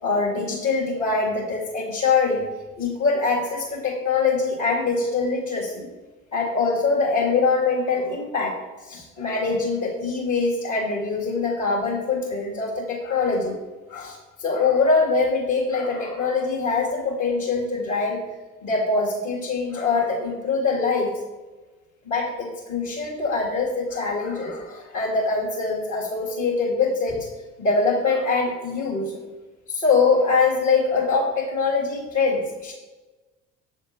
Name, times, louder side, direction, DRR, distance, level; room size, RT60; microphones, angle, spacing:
voice 1, 0.0-2.4 2.8-5.9 6.3-8.6 8.8-13.6 13.9-18.2 18.6-21.1 22.0-27.3 27.6-29.2 29.7-32.7, left 4 dB, 45° left, -5 dB, 1.9 m, -23 dB
7.5 x 3.6 x 4.2 m, 1.2 s
figure-of-eight pair, 55°, 40 cm